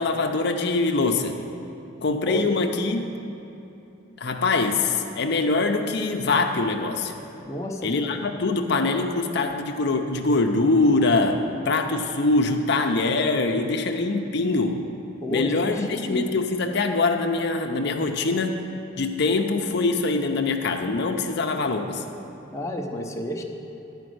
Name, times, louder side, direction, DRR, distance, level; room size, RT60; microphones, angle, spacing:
voice 1, 0.0-1.4 2.0-3.1 4.2-7.1 7.8-14.9 15.3-18.6 19.0-22.0, left 3 dB, 60° left, 4 dB, 0.6 m, -23 dB
voice 2, 2.2-2.6 7.4-8.2 15.2-16.3 22.5-23.4, left 1 dB, 15° left, 0 dB, 0.7 m, -31 dB
11.0 x 5.2 x 7.8 m, 2.9 s
head